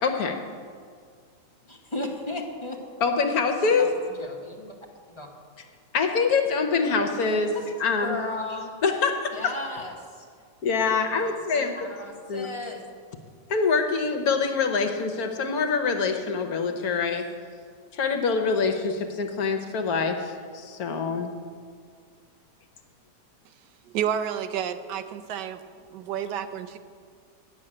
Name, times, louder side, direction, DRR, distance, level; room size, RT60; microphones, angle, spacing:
voice 1, 0.0-0.4 3.0-3.9 5.9-8.2 8.8-9.5 10.6-11.7 12.3-12.5 13.5-17.2 17.9-21.3, left 5 dB, 60° left, 5 dB, 1.3 m, -25 dB
voice 2, 1.6-2.8 3.7-4.8 5.1-5.3 7.5-7.7 8.0-8.8 9.3-10.3 11.2-12.8, left 2 dB, 20° left, 0 dB, 0.9 m, -36 dB
voice 3, 23.9-25.6 25.9-26.8, right 9 dB, 75° right, 10 dB, 1.2 m, -30 dB
9.6 x 6.6 x 8.7 m, 2.1 s
omnidirectional pair, 1.9 m